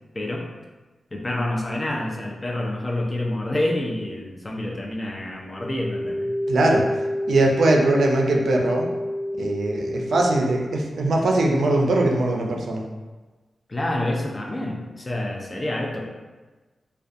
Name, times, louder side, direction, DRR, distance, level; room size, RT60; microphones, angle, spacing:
voice 1, 0.1-0.5 1.1-6.3 13.7-16.0, left 1 dB, 30° left, 0 dB, 0.4 m, -28 dB
sound 1, 5.6-10.5, left 1 dB, 85° left, 1.1 m, -28 dB
voice 2, 6.5-6.8 7.3-8.9 9.4-12.9, right 2 dB, 80° right, 0 dB, 0.3 m, -21 dB
2.5 x 2.2 x 2.4 m, 1.2 s
cardioid pair, 70°, 0 cm